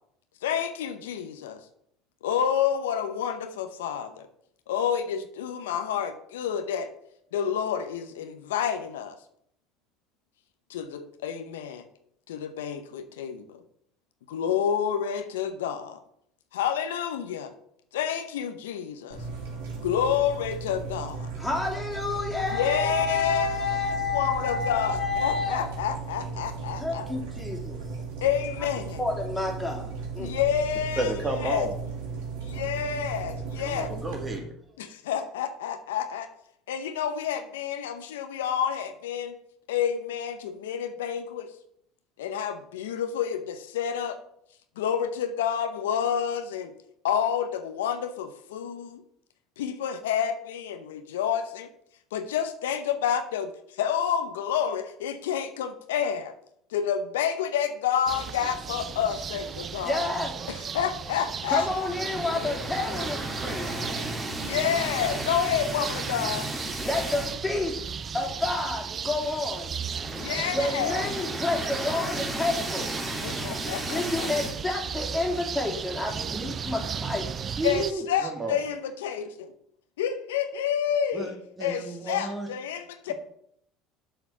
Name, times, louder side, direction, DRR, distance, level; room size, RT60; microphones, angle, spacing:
voice 1, 0.4-1.6 2.2-4.3 4.7-6.9 7.3-9.2 10.7-11.8 12.3-13.4 14.3-16.0 16.5-17.5 17.9-19.2 19.8-21.3 22.5-27.1 28.2-29.0 30.2-31.1 31.4-31.7 32.4-33.9 34.8-36.3 36.7-39.3 39.7-41.5 42.2-44.2 44.8-46.7 47.0-49.0 49.6-51.7 52.1-56.3 56.7-60.0 60.5-61.9 62.3-64.1 64.4-66.5 70.1-71.1 73.2-74.3 77.6-79.5 80.0-81.3 81.6-83.1, left 8 dB, 85° left, 9 dB, 0.8 m, -29 dB
sound 1, 19.1-34.4, right 5 dB, 80° right, 2.5 m, -36 dB
voice 2, 21.4-25.7 26.8-27.8 29.0-29.9 30.1-30.3 59.8-60.3 61.5-63.7 66.8-67.8 68.1-69.7 70.5-72.9 73.4-73.6 73.9-77.2, left 3 dB, 10° left, 0 dB, 2.9 m, -29 dB
voice 3, 31.0-31.7 33.6-34.5 77.6-78.6 81.1-82.5 83.1-83.2, right 1 dB, 20° right, 4 dB, 2.0 m, -31 dB
sound 2, 58.1-77.9, right 6 dB, 35° right, 0.6 m, -35 dB
sound 3, 61.8-67.6 68.0-68.1 68.4-68.5 69.6-74.6, right 1 dB, 5° right, 2.2 m, -35 dB
7.4 x 5.1 x 6.9 m, 0.70 s
hypercardioid pair, 80°, 0 cm